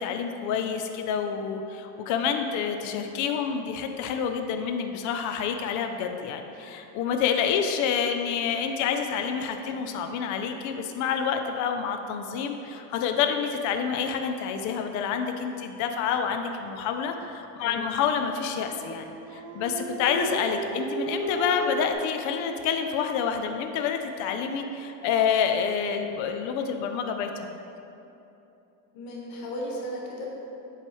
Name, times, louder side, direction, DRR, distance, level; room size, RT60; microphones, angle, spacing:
voice 1, 0.0-27.5, left 7 dB, 60° left, 6 dB, 0.5 m, -28 dB
Dog, 18.5-21.9, right 4 dB, 60° right, 0.6 m, -35 dB
voice 2, 28.9-30.3, equal, 75° left, -2 dB, 1.3 m, -35 dB
7.7 x 4.6 x 3.0 m, 2.9 s
cardioid pair, 170°, 35 cm